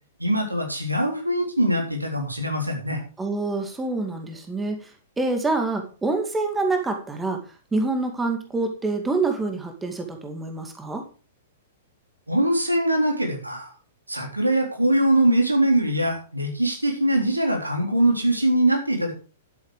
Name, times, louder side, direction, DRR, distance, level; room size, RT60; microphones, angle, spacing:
voice 1, 0.2-3.0 12.3-13.7 14.1-19.1, right 1 dB, 90° right, 3 dB, 3.5 m, -22 dB
voice 2, 3.2-4.9 5.2-7.4 7.7-11.0, right 3 dB, 10° right, 5 dB, 2.2 m, -26 dB
11.5 x 8.1 x 4.9 m, 0.35 s
figure-of-eight pair, 105°, 0 cm